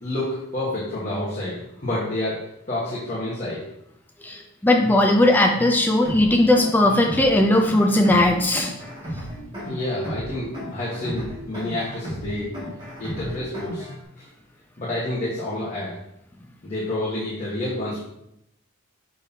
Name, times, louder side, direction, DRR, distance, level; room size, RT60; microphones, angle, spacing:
voice 1, 0.0-3.6 9.6-12.5 13.0-13.9 14.2-14.3 14.8-15.9 16.6-18.0, left 1 dB, 35° left, -8 dB, 1.4 m, -29 dB
voice 2, 4.2-8.7, left 1 dB, 10° left, 1 dB, 0.5 m, -18 dB
sound 1, 6.0-14.0, equal, 20° right, 2.1 m, -35 dB
6.5 x 5.3 x 2.8 m, 0.79 s
head